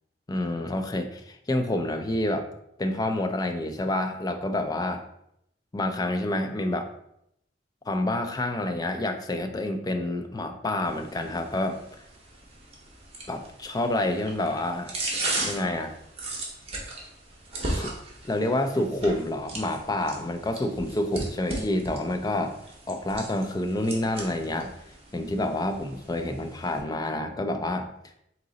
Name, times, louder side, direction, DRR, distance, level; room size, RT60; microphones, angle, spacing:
voice 1, 0.3-2.5 2.8-5.0 5.7-6.9 7.9-11.8 13.3-14.9 15.4-16.0 17.7-17.9 18.2-22.6 22.9-24.7 25.1-27.9, left 1 dB, 20° left, 5 dB, 0.4 m, -28 dB
sound 1, 10.8-26.8, right 2 dB, 35° right, 0.9 m, -37 dB
3.9 x 2.9 x 3.8 m, 0.75 s
head